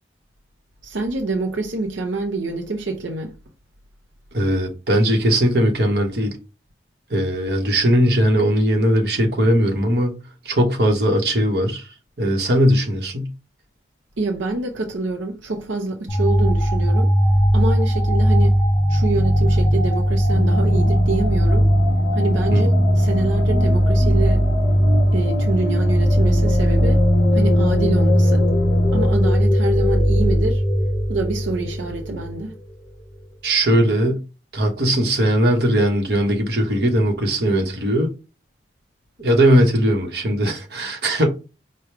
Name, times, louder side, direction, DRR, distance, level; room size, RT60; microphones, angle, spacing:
voice 1, 0.8-3.3 14.2-17.1 17.5-18.6 18.9-21.7 22.1-24.5 25.1-27.0 27.3-28.5 28.9-30.6 31.1-32.6, right 3 dB, 90° right, 0.6 m, -26 dB
voice 2, 4.3-6.4 7.1-10.1 10.4-11.9 12.2-13.3 22.5-22.6 33.4-34.1 34.5-38.1 39.2-41.3, equal, 60° right, 1.1 m, -19 dB
sound 1, 16.1-32.4, equal, 20° left, 0.7 m, -18 dB
sound 2, 20.3-29.1, left 2 dB, 85° left, 0.4 m, -28 dB
4.9 x 2.2 x 4.6 m
head